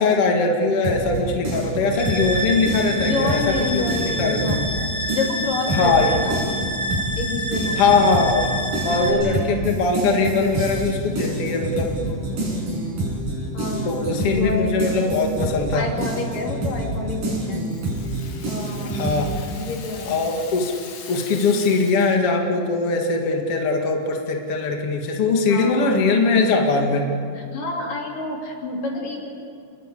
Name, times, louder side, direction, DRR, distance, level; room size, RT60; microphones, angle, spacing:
voice 1, 0.0-4.6 5.7-6.2 7.8-8.5 8.8-11.9 13.8-15.9 18.9-19.5 20.1-20.7 21.1-27.1, left 3 dB, 50° left, 1 dB, 2.8 m, -21 dB
sound 1, 0.8-4.8 5.1-19.3, right 2 dB, 75° right, 8.4 m, -27 dB
sound 2, 1.9-9.1, equal, 15° right, 4.5 m, -28 dB
voice 2, 3.0-6.5 7.2-7.9 8.9-9.5 12.0-12.7 13.5-15.5 15.7-17.6 18.4-19.1 19.6-20.2 25.5-26.8 27.4-29.2, left 3 dB, 80° left, 0 dB, 5.0 m, -29 dB
Rattle (instrument), 17.3-22.4, left 6 dB, 65° left, 3.3 m, -41 dB
28.0 x 21.0 x 8.5 m, 2.4 s
omnidirectional pair, 3.8 m